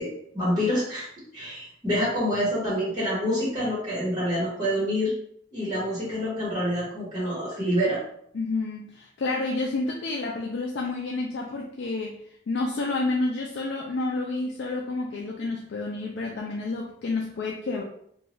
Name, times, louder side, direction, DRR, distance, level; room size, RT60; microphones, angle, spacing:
voice 1, 0.0-5.1 5.5-8.0, equal, 20° right, -8 dB, 1.2 m, -27 dB
voice 2, 8.3-12.2 12.5-17.8, left 3 dB, 70° left, -1 dB, 0.4 m, -29 dB
2.7 x 2.2 x 3.1 m, 0.69 s
head